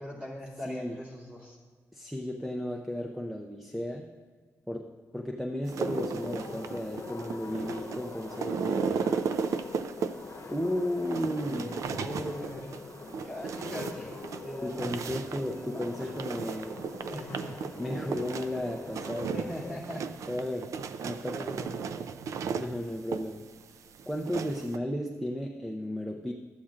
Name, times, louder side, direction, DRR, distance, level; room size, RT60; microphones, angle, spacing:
voice 1, 0.0-1.6 11.8-12.6 13.2-16.0 17.0-17.6 18.3-18.5 19.3-20.1 21.3-22.1, equal, 20° right, -6 dB, 2.7 m, -41 dB
voice 2, 0.7-1.0 1.9-4.1 4.7-9.1 10.5-11.9 14.6-16.8 17.8-19.4 20.3-20.7 21.0-21.5 22.5-23.4 24.1-26.3, left 1 dB, ahead, 2 dB, 0.5 m, -34 dB
sound 1, 5.7-24.8, right 6 dB, 75° right, 0.4 m, -36 dB
sound 2, 5.8-19.8, left 4 dB, 60° left, 0.8 m, -43 dB
13.0 x 8.4 x 2.5 m, 1.5 s
wide cardioid pair, 140°, 5 cm